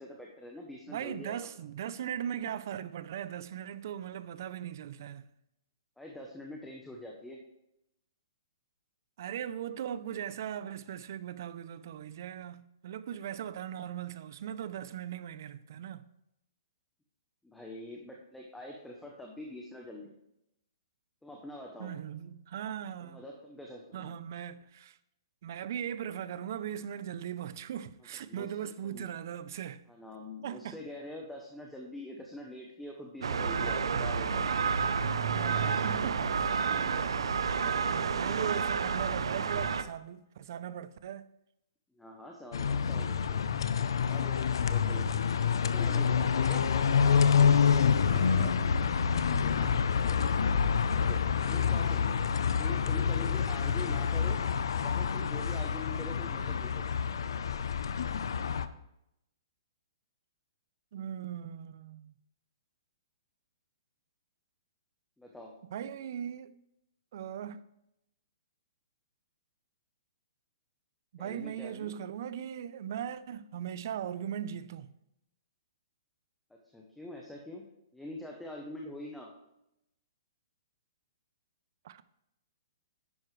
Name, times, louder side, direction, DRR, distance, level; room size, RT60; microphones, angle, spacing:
voice 1, 0.0-1.5 6.0-7.4 17.4-20.2 21.2-21.9 23.0-24.1 28.3-29.1 29.9-34.6 35.4-35.8 41.9-43.4 44.0-45.2 45.6-46.6 49.5-49.8 50.9-52.2 52.6-54.4 54.8-56.9 65.2-65.6 71.2-71.9 76.5-77.6 77.9-79.3, left 1 dB, 5° left, 0.8 m, -45 dB
voice 2, 0.9-5.3 9.2-16.1 21.8-23.2 23.9-25.0 25.4-29.8 30.4-30.8 35.3-36.5 37.9-41.2 47.0-48.8 60.9-62.1 65.7-66.5 67.1-67.6 71.1-74.9 81.8-82.0, right 9 dB, 40° right, 0.5 m, -39 dB
sound 1, 33.2-39.8, right 6 dB, 90° right, 0.7 m, -30 dB
sound 2, 42.5-58.7, left 6 dB, 70° left, 0.6 m, -27 dB
11.0 x 9.5 x 3.2 m
hypercardioid pair, 175°, 3 cm